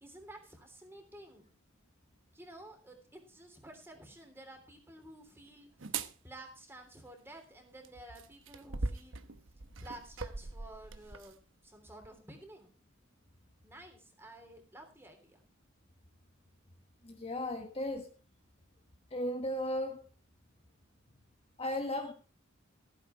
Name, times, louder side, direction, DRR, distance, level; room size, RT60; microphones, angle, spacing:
voice 1, 0.0-1.4 2.3-5.7 6.2-9.2 9.7-12.7 13.6-15.4, right 1 dB, 10° right, 3.3 m, -52 dB
sound 1, 5.8-6.1 7.8-11.3 12.0-12.2, right 3 dB, 75° right, 1.0 m, -40 dB
voice 2, 17.0-18.1 19.1-20.0 21.6-22.1, left 1 dB, 30° left, 1.3 m, -35 dB
15.0 x 9.0 x 4.6 m
head